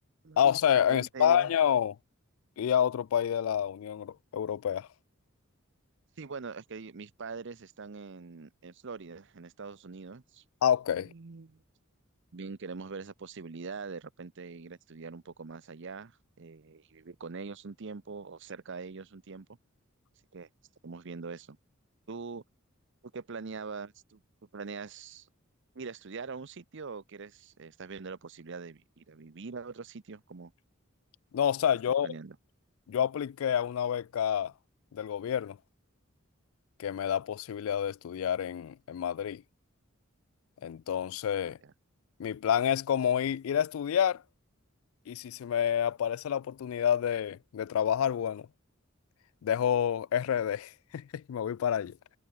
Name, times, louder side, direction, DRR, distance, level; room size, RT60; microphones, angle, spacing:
voice 1, 0.4-2.0 2.6-4.9 10.6-11.1 31.3-32.1 32.9-34.5 34.9-35.6 36.8-39.4 40.6-41.6 42.2-44.2 45.1-48.5 49.4-52.0, left 9 dB, 80° left, 0.3 m, -28 dB
voice 2, 0.9-1.5 6.2-10.4 11.0-11.6 12.3-19.5 20.3-20.5 20.8-21.6 22.1-22.4 23.1-24.2 24.5-25.3 25.7-30.5 32.0-32.4 41.6-41.7, right 4 dB, 60° right, 0.7 m, -43 dB
head